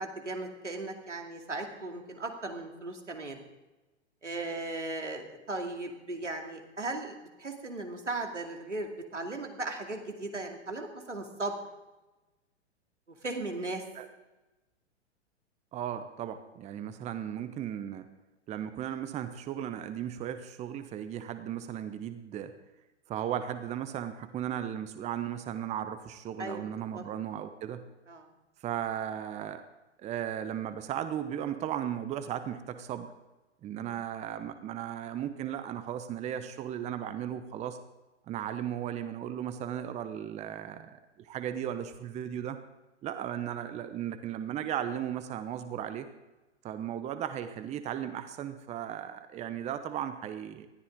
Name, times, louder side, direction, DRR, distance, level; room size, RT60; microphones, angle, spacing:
voice 1, 0.0-3.4 4.2-11.6 13.2-13.8 26.4-27.0 28.1-28.3, right 2 dB, 85° right, 3 dB, 2.5 m, -37 dB
voice 2, 15.7-18.1 18.5-22.5 23.1-27.8 28.6-29.6 30.0-33.1 33.6-37.8 38.3-42.6 43.0-46.1 46.6-50.7, right 10 dB, 20° right, 11 dB, 0.9 m, -36 dB
20.0 x 14.0 x 3.8 m, 1.1 s
figure-of-eight pair, 105°, 35 cm